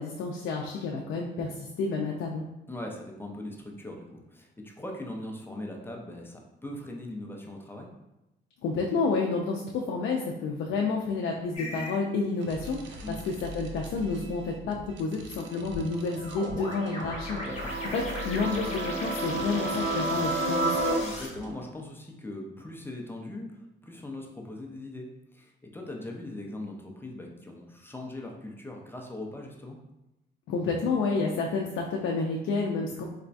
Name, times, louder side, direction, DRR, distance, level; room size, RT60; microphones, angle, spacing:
voice 1, 0.0-2.4 8.6-17.5 17.9-20.8 30.5-33.0, left 4 dB, 75° left, -1 dB, 0.4 m, -30 dB
voice 2, 2.7-7.9 13.0-13.2 17.4-17.7 21.0-29.8, left 1 dB, 10° left, 0 dB, 0.5 m, -40 dB
sound 1, 11.5-12.0 15.7-21.3, left 1 dB, 35° left, 1.0 m, -39 dB
sound 2, 12.4-21.5, equal, 70° right, 0.5 m, -45 dB
sound 3, 15.4-20.9, right 2 dB, 50° right, 1.0 m, -32 dB
4.1 x 2.2 x 2.5 m, 0.93 s
cardioid pair, 90°, 20 cm